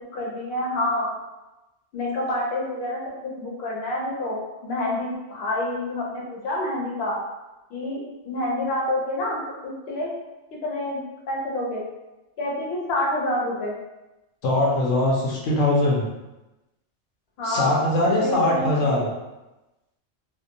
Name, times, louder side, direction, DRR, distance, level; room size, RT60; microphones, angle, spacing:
voice 1, 0.1-1.2 1.9-7.2 7.7-10.1 10.6-11.8 12.4-13.7 17.4-17.8 18.2-19.1, left 1 dB, 60° left, -3 dB, 0.8 m, -28 dB
voice 2, 14.4-16.0 17.4-19.1, left 1 dB, 90° left, -3 dB, 1.0 m, -21 dB
2.7 x 2.0 x 2.5 m, 1.0 s
omnidirectional pair, 1.3 m